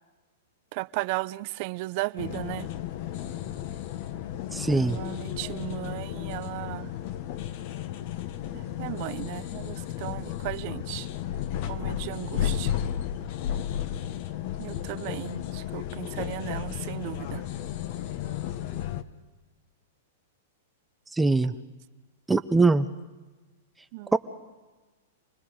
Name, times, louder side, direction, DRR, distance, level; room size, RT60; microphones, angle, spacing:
voice 1, 0.7-2.7 4.7-6.9 8.5-11.1 11.7-12.8 14.6-17.4 23.9-24.2, right 21 dB, 50° right, 0.6 m, -35 dB
sound 1, 2.2-19.0, left 11 dB, 50° left, 1.2 m, -33 dB
voice 2, 4.5-5.0 21.1-21.5 22.3-22.9 24.1-24.2, right 3 dB, 10° right, 0.7 m, -22 dB
27.5 x 19.5 x 5.1 m
hypercardioid pair, 120°, 0 cm